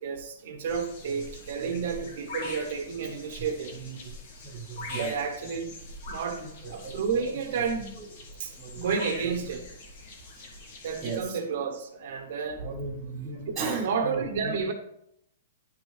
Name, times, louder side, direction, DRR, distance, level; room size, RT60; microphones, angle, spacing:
voice 1, 0.0-3.7 5.0-5.7 6.1-7.9 8.4-9.7 10.8-12.7 13.4-13.5 13.8-14.7, right 6 dB, 50° right, 4 dB, 1.3 m, -31 dB
sound 1, 0.7-11.2, left 2 dB, 45° left, 1.2 m, -43 dB
voice 2, 4.4-5.1 6.4-6.9 8.6-8.8 9.2-9.3 11.0-11.4 12.6-14.6, right 4 dB, 15° right, -5 dB, 1.5 m, -36 dB
10.5 x 3.5 x 3.2 m, 0.75 s
hypercardioid pair, 165°, 0 cm